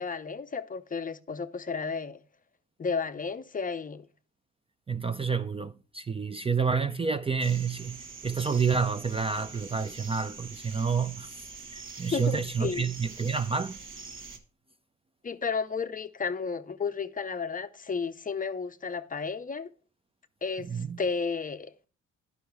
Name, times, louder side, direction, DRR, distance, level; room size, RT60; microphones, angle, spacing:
voice 1, 0.0-2.2 2.8-4.1 12.1-12.8 15.2-19.7 20.4-21.9, left 5 dB, 30° left, 0.6 m, -33 dB
voice 2, 4.9-11.4 11.7-13.8 20.7-21.0, right 5 dB, 20° right, 0.4 m, -29 dB
sound 1, 7.4-14.4, right 4 dB, 40° right, 1.2 m, -44 dB
10.0 x 5.6 x 4.6 m
cardioid pair, 90°, 30 cm